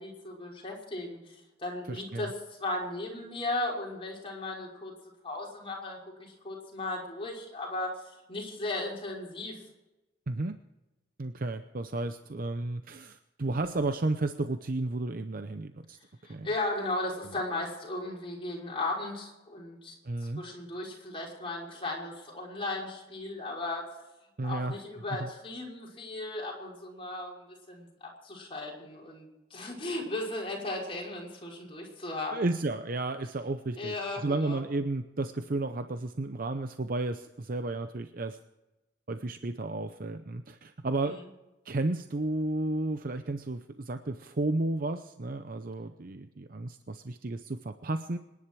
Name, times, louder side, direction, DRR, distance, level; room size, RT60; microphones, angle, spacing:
voice 1, 0.0-4.9 5.2-9.6 16.2-19.9 20.4-23.8 24.4-32.4 33.8-34.6 41.0-41.2, left 2 dB, 30° left, -3 dB, 5.5 m, -36 dB
voice 2, 1.9-2.3 10.3-10.6 11.2-16.0 16.3-16.5 17.2-17.3 20.0-20.4 24.4-24.8 25.2-25.3 32.3-38.4 39.1-41.2 41.6-48.2, right 2 dB, 50° right, 9 dB, 0.7 m, -33 dB
26.5 x 11.0 x 4.7 m, 1.0 s
head